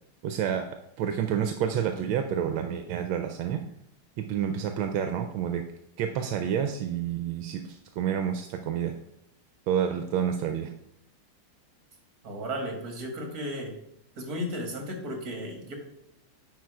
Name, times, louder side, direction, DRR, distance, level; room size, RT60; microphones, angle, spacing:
voice 1, 0.2-0.7 1.0-3.6 4.2-5.6 6.0-8.9 9.7-10.7, right 8 dB, 80° right, 7 dB, 1.4 m, -29 dB
voice 2, 12.2-13.7 14.2-15.7, equal, 45° right, 2 dB, 2.1 m, -34 dB
9.5 x 4.0 x 4.7 m, 0.80 s
omnidirectional pair, 2.3 m